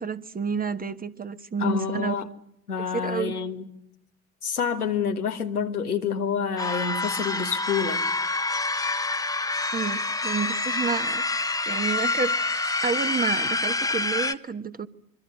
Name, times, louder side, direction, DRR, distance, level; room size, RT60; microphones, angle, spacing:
voice 1, 0.0-2.3 2.9-3.3 9.7-12.4 12.8-14.9, right 5 dB, 20° right, 1.4 m, -30 dB
voice 2, 1.6-2.3 2.7-3.7 4.4-8.0, left 6 dB, 85° left, 1.7 m, -28 dB
sound 1, 6.6-14.3, left 3 dB, 10° left, 1.0 m, -27 dB
26.0 x 24.0 x 6.8 m
figure-of-eight pair, 60°, 44 cm